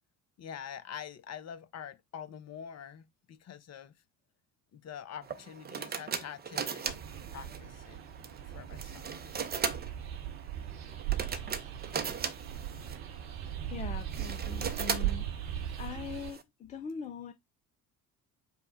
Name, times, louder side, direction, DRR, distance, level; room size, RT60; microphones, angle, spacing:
voice 1, 0.4-3.9 4.7-7.0 7.3-8.0 8.4-9.1, left 8 dB, 35° left, 0.8 m, -45 dB
sound 1, 5.2-16.4, right 6 dB, 20° right, 0.6 m, -39 dB
sound 2, 6.9-16.3, right 11 dB, 50° right, 1.0 m, -38 dB
voice 2, 13.7-15.4 15.8-17.3, left 6 dB, 15° left, 0.3 m, -42 dB
5.4 x 2.1 x 4.3 m
figure-of-eight pair, 55°, 48 cm